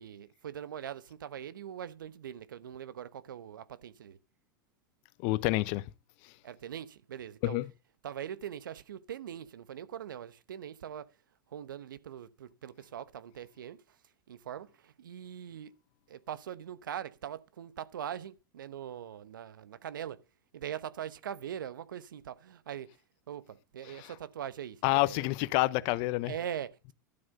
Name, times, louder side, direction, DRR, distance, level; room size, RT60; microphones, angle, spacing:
voice 1, 0.0-4.2 6.4-7.6 8.0-11.1 11.5-13.8 14.3-15.7 16.1-20.2 20.5-22.9 23.3-25.3 26.2-26.9, right 9 dB, 80° right, 1.0 m, -42 dB
voice 2, 5.2-5.8 7.4-7.7 23.8-24.1 24.8-26.3, left 20 dB, 55° left, 0.9 m, -28 dB
12.0 x 7.7 x 5.4 m
hypercardioid pair, 95°, 11 cm